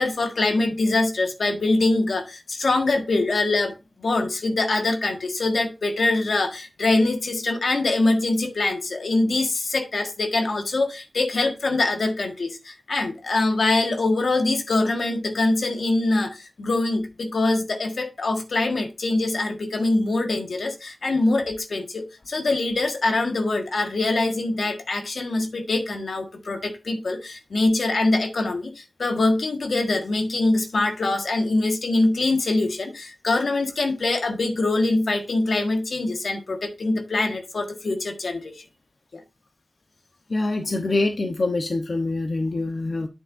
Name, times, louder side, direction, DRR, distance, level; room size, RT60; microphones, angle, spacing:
voice 1, 0.0-38.6 39.1-39.2, left 2 dB, 90° left, 1.5 m, -24 dB
voice 2, 40.3-43.1, left 2 dB, 65° left, 0.9 m, -25 dB
9.1 x 7.6 x 2.6 m
wide cardioid pair, 60°, 0 cm